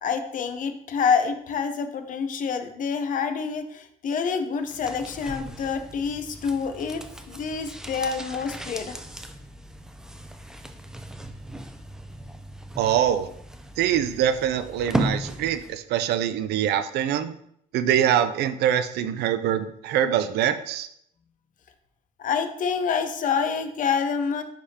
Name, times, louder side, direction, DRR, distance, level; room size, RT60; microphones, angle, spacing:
voice 1, 0.0-9.0 22.2-24.4, left 6 dB, 50° left, 8 dB, 0.7 m, -27 dB
sound 1, 4.6-15.8 16.1-16.2, right 1 dB, 5° right, 0.5 m, -36 dB
voice 2, 12.8-13.3 13.8-17.3 17.7-20.9, right 10 dB, 75° right, 11 dB, 0.5 m, -24 dB
9.6 x 3.5 x 2.8 m, 0.72 s
cardioid pair, 110°, 17 cm